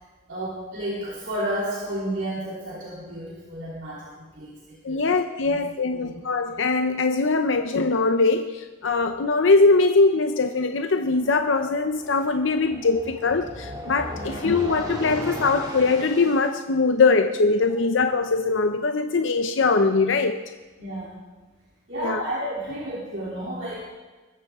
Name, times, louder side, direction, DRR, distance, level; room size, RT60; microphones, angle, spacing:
voice 1, 0.3-5.1 5.4-5.6 5.9-6.1 14.1-14.3 20.8-21.1 21.9-23.8, right 1 dB, 65° right, -6 dB, 3.2 m, -32 dB
voice 2, 4.8-20.4 22.0-22.2, left 3 dB, 70° left, 7 dB, 0.7 m, -22 dB
sound 1, 11.0-16.5, equal, 20° right, 2.9 m, -37 dB
22.0 x 13.5 x 3.6 m, 1.3 s
head